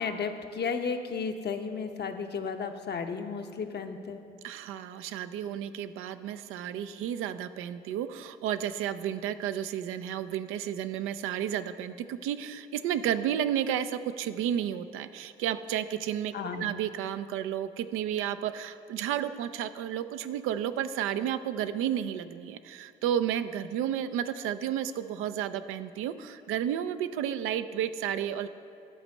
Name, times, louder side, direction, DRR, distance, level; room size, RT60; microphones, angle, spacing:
voice 1, 0.0-4.2 16.3-16.7, left 5 dB, 55° left, 6 dB, 0.8 m, -33 dB
voice 2, 4.4-28.5, right 10 dB, 80° right, 11 dB, 0.4 m, -32 dB
11.0 x 4.2 x 6.3 m, 2.7 s
supercardioid pair, 50°, 21 cm